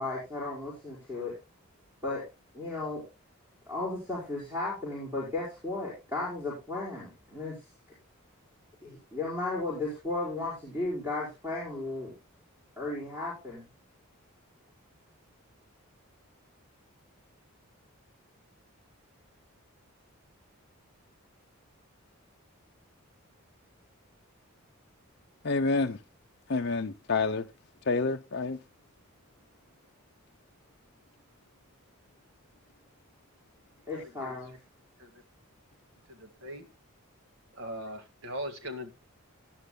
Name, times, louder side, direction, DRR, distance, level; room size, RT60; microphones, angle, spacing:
voice 1, 0.0-1.3 2.0-2.2 2.5-3.1 3.7-7.6 8.8-12.1 12.8-13.6 33.9-34.5, left 2 dB, 10° right, 5.4 m, -35 dB
voice 2, 25.4-26.0 26.5-27.5 27.9-28.6, left 3 dB, 50° left, 0.6 m, -28 dB
voice 3, 33.9-34.3 35.0-35.2 36.1-36.7 37.5-38.9, equal, 60° right, 1.9 m, -40 dB
18.5 x 10.0 x 2.2 m
head